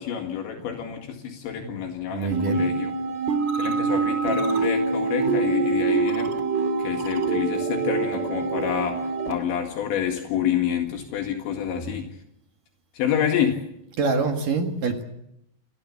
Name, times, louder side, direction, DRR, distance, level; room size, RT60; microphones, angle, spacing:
voice 1, 0.0-2.9 3.6-6.3 6.8-12.1 12.9-13.6, left 9 dB, 70° left, 3 dB, 4.1 m, -28 dB
voice 2, 2.1-2.7 11.7-11.9 14.0-15.0, right 4 dB, 55° right, 5 dB, 2.9 m, -26 dB
sound 1, 2.3-9.3, right 4 dB, 35° right, 2.1 m, -25 dB
29.5 x 13.5 x 8.5 m, 0.80 s
omnidirectional pair, 5.5 m